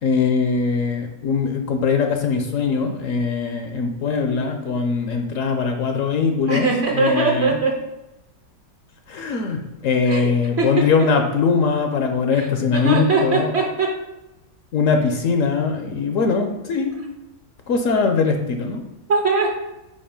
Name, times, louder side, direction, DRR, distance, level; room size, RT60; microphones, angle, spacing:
voice 1, 0.0-7.6 9.1-13.5 14.7-16.9 17.7-18.8, left 5 dB, 65° left, 5 dB, 0.9 m, -21 dB
voice 2, 6.5-7.8 10.1-10.3 10.6-10.9 12.3-14.0 19.1-19.5, right 3 dB, 50° right, 1 dB, 0.9 m, -21 dB
5.5 x 4.6 x 5.1 m, 0.95 s
omnidirectional pair, 1.7 m